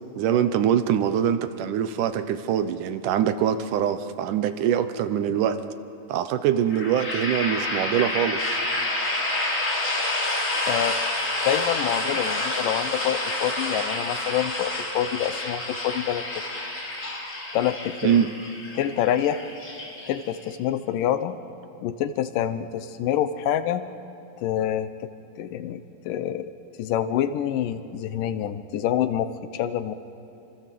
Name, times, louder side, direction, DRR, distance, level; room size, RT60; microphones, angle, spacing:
voice 1, 0.2-5.6 6.1-8.6 18.0-18.3, right 9 dB, 75° right, 11 dB, 2.2 m, -23 dB
sound 1, 6.7-20.5, left 2 dB, 25° left, 3.0 m, -29 dB
voice 2, 11.5-16.2 17.5-18.1 18.8-19.5 20.1-21.4 21.8-23.8 24.4-24.9 25.4-26.5 26.8-29.9, left 10 dB, 80° left, 11 dB, 2.4 m, -26 dB
26.5 x 25.0 x 7.6 m, 2.9 s
omnidirectional pair, 3.9 m